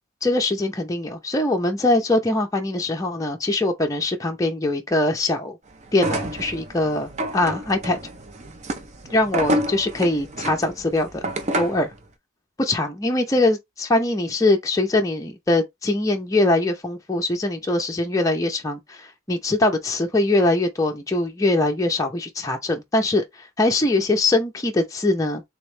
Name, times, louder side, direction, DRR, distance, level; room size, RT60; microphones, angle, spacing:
voice 1, 0.2-5.6 5.9-8.0 9.1-11.9 12.6-25.4, left 2 dB, 15° left, 0.5 m, -22 dB
sound 1, 5.9-11.9, right 1 dB, 30° right, 0.5 m, -28 dB
3.5 x 3.1 x 3.2 m
head